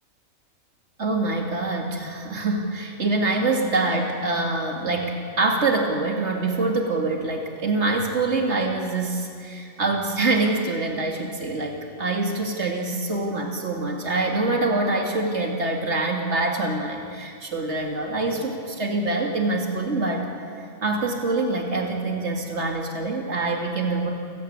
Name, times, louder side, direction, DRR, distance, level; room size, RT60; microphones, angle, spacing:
voice 1, 1.0-20.3 20.6-24.1, right 2 dB, 60° right, 1 dB, 2.8 m, -25 dB
29.0 x 16.5 x 8.9 m, 2.4 s
omnidirectional pair, 1.3 m